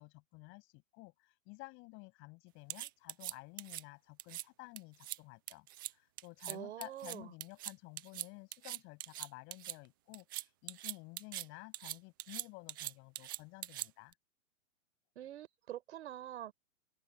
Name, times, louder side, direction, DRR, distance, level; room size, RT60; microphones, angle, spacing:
voice 1, 0.0-5.7 5.9-14.1, left 26 dB, 30° left, 7.4 m, -53 dB
sound 1, 2.7-3.8 4.2-4.4 4.8-5.2 5.5-5.9 6.2-6.6 6.8-9.8 10.1-11.5 11.7-14.1, right 16 dB, 20° right, 0.4 m, -42 dB
voice 2, 6.5-7.3 15.2-16.5, right 12 dB, 60° right, 6.3 m, -45 dB
open air
hypercardioid pair, 150°, 39 cm